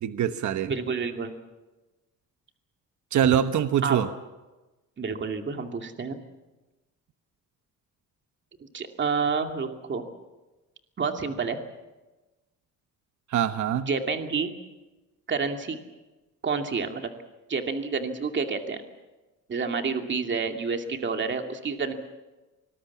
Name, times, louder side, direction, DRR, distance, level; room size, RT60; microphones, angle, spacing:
voice 1, 0.0-0.7 3.1-4.1 13.3-13.9, right 9 dB, 60° right, 10 dB, 1.2 m, -24 dB
voice 2, 0.6-1.3 3.8-4.0 5.0-6.2 8.6-10.0 11.0-11.6 13.9-14.5 15.3-15.8 16.4-17.1 17.5-18.8 19.5-21.9, right 5 dB, 35° right, 5 dB, 2.5 m, -29 dB
25.0 x 20.5 x 7.3 m, 1.1 s
cardioid pair, 115°, 33 cm